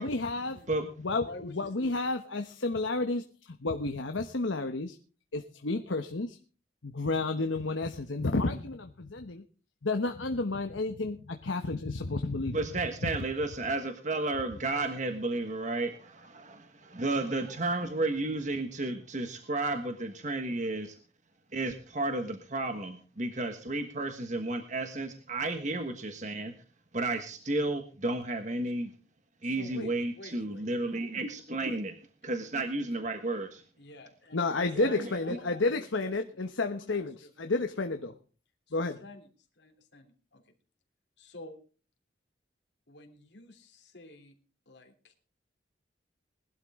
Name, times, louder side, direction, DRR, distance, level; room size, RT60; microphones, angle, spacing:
voice 1, 0.0-0.6 1.0-5.0 5.3-6.4 6.8-9.4 9.8-12.6 34.3-38.1 38.7-39.0, left 3 dB, 90° left, 6 dB, 1.1 m, -31 dB
voice 2, 1.1-2.1 29.4-31.2 33.8-37.5 38.7-39.3 39.6-40.4 41.2-41.6 42.9-44.3 44.7-45.1, left 1 dB, 65° left, 4 dB, 3.4 m, -49 dB
voice 3, 12.5-21.0 21.5-26.5 26.9-28.9 29.4-31.9 32.2-33.6 34.7-35.1, right 2 dB, 40° right, 6 dB, 1.5 m, -32 dB
21.0 x 12.0 x 3.7 m, 0.38 s
head